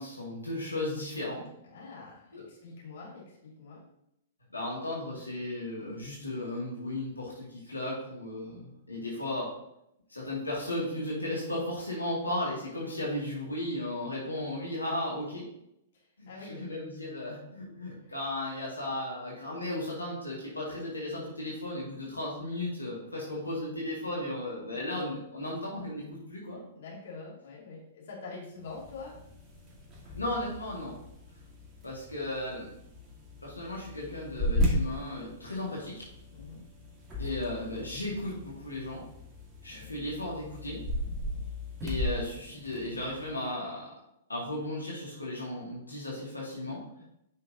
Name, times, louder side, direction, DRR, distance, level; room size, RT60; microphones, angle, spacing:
voice 1, 0.0-1.4 2.3-2.4 4.5-9.5 10.1-15.5 16.2-26.0 26.3-26.6 30.0-30.9 31.8-32.7 33.4-36.0 37.2-39.0 39.6-40.8 41.8-43.9 44.3-46.8, left 1 dB, 90° left, -5 dB, 2.2 m, -35 dB
voice 2, 1.6-3.9 15.9-16.6 18.0-18.1 26.7-29.2 36.3-36.7 39.7-39.9 41.2-41.4 47.0-47.1, left 3 dB, 60° left, -3 dB, 2.5 m, -45 dB
sound 1, 28.6-43.4, left 1 dB, 20° right, 1.7 m, -36 dB
9.2 x 5.7 x 2.7 m, 0.79 s
figure-of-eight pair, 110°, 0 cm